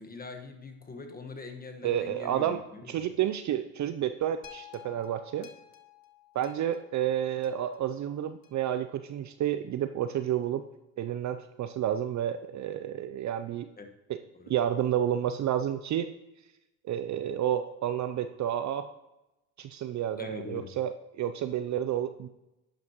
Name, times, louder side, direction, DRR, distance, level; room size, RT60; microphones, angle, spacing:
voice 1, 0.0-3.0 13.8-13.9 14.4-14.5 20.2-20.7, left 3 dB, 20° left, 4 dB, 1.4 m, -43 dB
voice 2, 1.8-2.6 2.9-5.5 6.3-10.6 11.0-13.7 14.1-14.2 14.5-16.1 16.8-18.9 19.6-22.3, right 10 dB, 40° right, 10 dB, 0.5 m, -30 dB
sound 1, 4.4-8.8 9.4-9.5, left 11 dB, 50° left, 1.5 m, -53 dB
11.5 x 9.3 x 3.0 m, 0.96 s
supercardioid pair, 80°, 44 cm